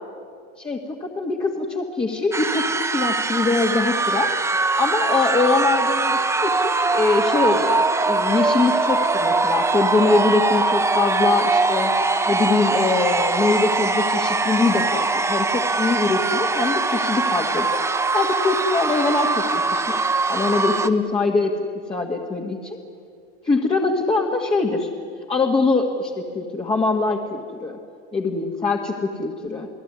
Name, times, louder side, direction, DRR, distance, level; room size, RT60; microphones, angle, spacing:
voice 1, 0.6-4.3 4.8-11.9 12.3-17.7 18.1-20.0 20.3-21.5 21.9-22.8 23.4-24.9 25.3-27.8 28.1-29.7, left 3 dB, 15° left, 0 dB, 1.8 m, -23 dB
sound 1, 2.3-20.9, right 3 dB, 10° right, 1.0 m, -22 dB
29.5 x 19.0 x 9.7 m, 2.3 s
supercardioid pair, 145°, 30 cm